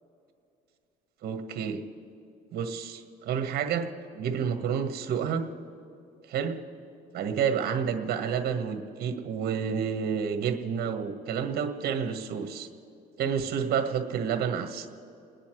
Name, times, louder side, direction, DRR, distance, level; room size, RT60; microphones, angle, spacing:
voice 1, 1.2-1.8 2.5-3.9 4.1-5.4 6.3-6.6 7.1-12.7 13.2-14.9, right 7 dB, 65° right, 6 dB, 1.7 m, -29 dB
29.0 x 10.0 x 4.8 m, 2.6 s
cardioid pair, 110°, 17 cm